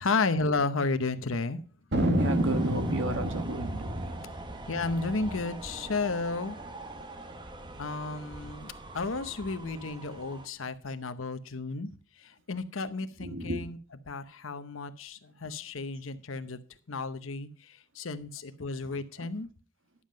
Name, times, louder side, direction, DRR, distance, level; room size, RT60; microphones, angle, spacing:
voice 1, 0.0-1.6 4.7-6.6 7.8-11.9 12.2-13.8 14.1-16.6 16.9-19.5, left 3 dB, 75° left, 0.9 m, -32 dB
Thunder, 1.9-6.7 7.0-7.1 7.3-7.9 8.3-9.5, right 1 dB, 55° right, 1.7 m, -31 dB
voice 2, 2.1-4.0 13.2-13.7 19.2-19.3, right 1 dB, 70° right, 1.5 m, -33 dB
sound 1, 2.2-10.5, right 2 dB, 20° right, 0.9 m, -44 dB
11.0 x 7.6 x 5.1 m
head